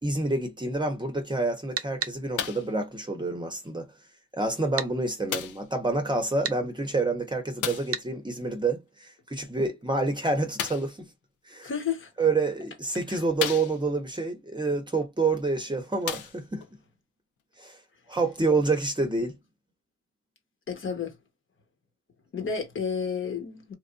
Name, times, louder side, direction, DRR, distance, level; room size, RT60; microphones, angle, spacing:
voice 1, 0.0-3.9 4.3-11.1 11.5-11.7 12.2-16.6 17.6-17.8 18.1-19.4, right 3 dB, 15° right, 0.9 m, -28 dB
sound 1, 1.8-2.2 4.8-4.9 6.4-6.6 7.9-8.1, right 8 dB, 50° right, 0.7 m, -31 dB
sound 2, 2.4-2.8 3.7-3.8 5.3-5.7 7.6-8.0 10.5-11.0 12.0-12.1 12.7-12.8 13.4-14.1 15.3-15.4 16.0-16.7 17.5-17.6, left 9 dB, 85° left, 0.9 m, -33 dB
voice 2, 11.6-12.1 13.1-13.2 20.7-21.2 22.3-23.7, left 6 dB, 40° left, 1.3 m, -31 dB
3.1 x 2.5 x 2.5 m
cardioid pair, 90°, 30 cm